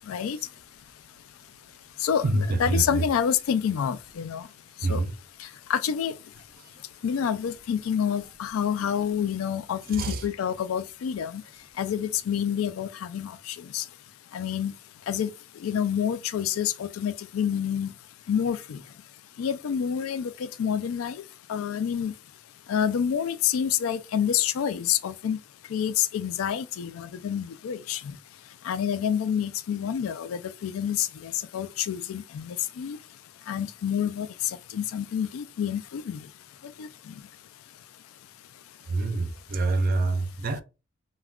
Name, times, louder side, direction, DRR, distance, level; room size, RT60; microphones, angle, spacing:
voice 1, 0.1-0.4 2.0-4.5 4.9-5.0 5.7-6.1 7.0-11.4 11.8-13.8 14.3-14.7 15.1-15.3 15.6-17.9 18.3-18.8 19.4-21.2 21.5-22.1 22.7-25.4 25.7-28.1 28.6-33.0 33.5-34.3 34.7-36.2 36.8-36.9, left 8 dB, 85° left, 0.3 m, -28 dB
voice 2, 2.2-3.0 4.8-5.1 6.6-6.7 9.9-10.2 38.9-40.6, right 2 dB, 45° right, 0.4 m, -26 dB
2.3 x 2.1 x 3.4 m
head